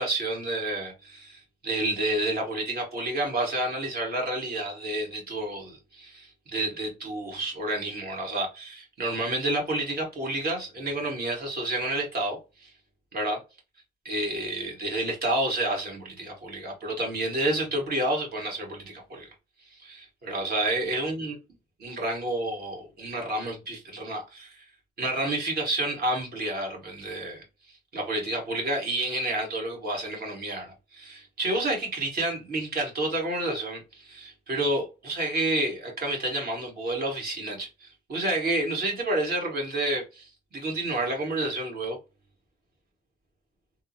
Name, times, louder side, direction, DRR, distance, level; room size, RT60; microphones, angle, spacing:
voice 1, 0.0-12.7 13.1-13.4 14.1-19.3 19.7-21.4 21.8-24.6 25.0-27.4 27.9-42.0, right 1 dB, 50° right, 1.6 m, -30 dB
3.4 x 2.0 x 2.7 m
cardioid pair, 90°, 20 cm